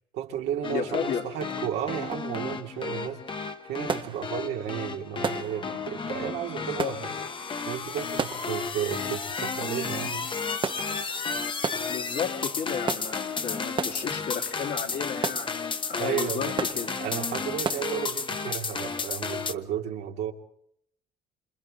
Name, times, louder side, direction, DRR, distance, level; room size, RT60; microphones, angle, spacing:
voice 1, 0.1-7.1 7.7-10.3 16.0-16.5 17.0-20.3, right 9 dB, 85° right, 1 dB, 2.5 m, -33 dB
sound 1, 0.6-19.5, left 5 dB, 30° left, 1.1 m, -33 dB
voice 2, 0.7-1.2 6.5-6.9 11.9-15.6 15.9-16.9, left 7 dB, 65° left, 0 dB, 3.2 m, -33 dB
sound 2, 3.5-18.0, right 6 dB, 30° right, 0.7 m, -37 dB
27.5 x 27.0 x 3.8 m, 0.68 s
cardioid pair, 110°, 17 cm